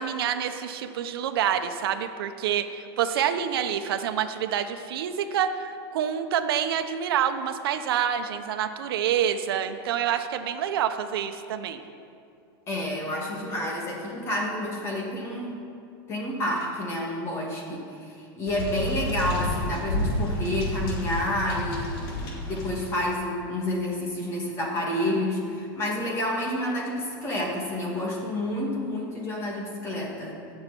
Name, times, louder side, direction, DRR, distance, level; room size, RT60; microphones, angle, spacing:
voice 1, 0.0-11.8, right 9 dB, 75° right, 7 dB, 1.1 m, -27 dB
voice 2, 12.7-15.6 16.1-30.4, left 1 dB, 20° left, -2 dB, 2.4 m, -29 dB
sound 1, 18.5-23.0, left 1 dB, 85° left, 4.4 m, -30 dB
14.5 x 6.8 x 9.9 m, 2.5 s
supercardioid pair, 175°, 13 cm